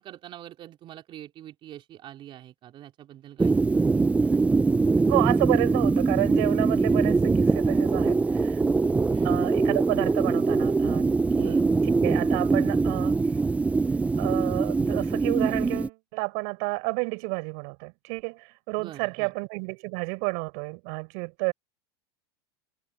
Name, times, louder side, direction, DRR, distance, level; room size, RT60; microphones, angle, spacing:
voice 1, 0.0-3.8 9.1-9.4 11.4-11.8 18.8-19.3, right 12 dB, 40° right, 3.4 m, -45 dB
sound 1, 3.4-15.9, right 3 dB, 10° right, 0.5 m, -23 dB
voice 2, 5.1-8.6 9.2-11.1 11.4-13.2 14.2-21.5, right 34 dB, 65° right, 4.4 m, -30 dB
supercardioid pair, 120°, 13 cm